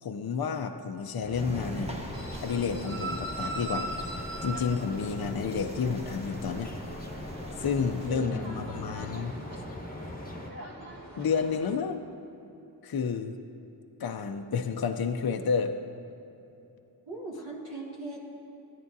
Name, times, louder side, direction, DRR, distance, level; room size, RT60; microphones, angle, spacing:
voice 1, 0.0-2.0 2.4-3.9 4.1-6.7 7.6-9.3 11.2-12.0 12.8-13.4 14.0-15.8, left 6 dB, 55° left, 7 dB, 0.6 m, -30 dB
sound 1, 1.2-10.5, left 1 dB, 20° left, 1.0 m, -41 dB
sound 2, 1.3-8.1, equal, 15° right, 1.0 m, -42 dB
sound 3, 2.1-11.8, right 2 dB, 50° right, 1.6 m, -41 dB
voice 2, 8.1-9.0 17.1-18.3, right 2 dB, 80° right, -5 dB, 1.8 m, -39 dB
13.5 x 9.3 x 2.7 m, 3.0 s
wide cardioid pair, 45°, 45 cm